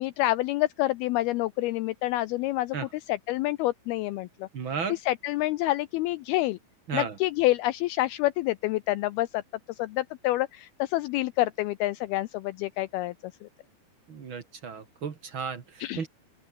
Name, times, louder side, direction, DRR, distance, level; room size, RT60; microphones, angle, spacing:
voice 1, 0.0-2.8 3.1-4.5 4.9-6.6 6.9-9.4 9.8-13.5 15.8-16.0, left 17 dB, 90° left, 2.2 m, -28 dB
voice 2, 4.5-5.0 6.9-7.1 14.1-16.1, right 6 dB, 50° right, 1.6 m, -34 dB
open air
omnidirectional pair, 5.1 m